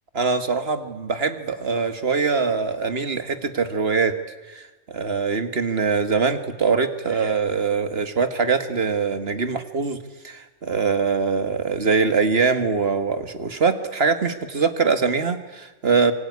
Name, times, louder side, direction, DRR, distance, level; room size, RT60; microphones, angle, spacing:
voice 1, 0.1-4.2 4.4-10.0 10.2-16.1, right 5 dB, 50° right, 10 dB, 1.9 m, -23 dB
25.5 x 24.0 x 9.7 m, 1.2 s
omnidirectional pair, 1.4 m